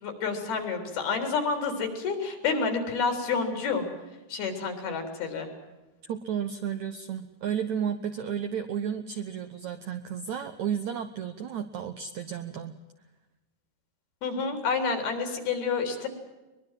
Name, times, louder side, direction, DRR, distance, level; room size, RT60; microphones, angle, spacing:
voice 1, 0.0-3.9 4.3-5.5 14.2-16.1, left 5 dB, 65° left, 6 dB, 5.5 m, -29 dB
voice 2, 6.0-12.7, right 8 dB, 70° right, 8 dB, 1.8 m, -32 dB
22.5 x 22.0 x 7.6 m, 1.1 s
omnidirectional pair, 4.7 m